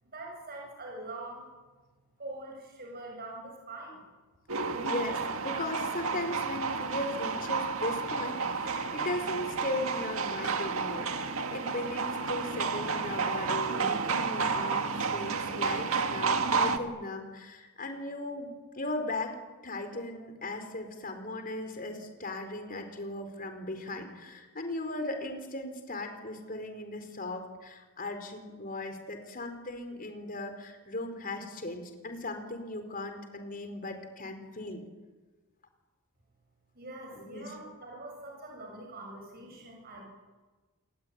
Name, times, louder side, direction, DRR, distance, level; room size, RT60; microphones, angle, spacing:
voice 1, 0.0-1.5 2.2-4.0 36.7-40.1, right 2 dB, 45° right, 0 dB, 7.8 m, -43 dB
sound 1, 4.5-16.8, right 4 dB, 65° right, 2.0 m, -31 dB
voice 2, 4.8-19.4 19.6-34.8 37.2-37.5, left 2 dB, 40° left, 7 dB, 4.7 m, -37 dB
28.5 x 21.0 x 9.7 m, 1.3 s
head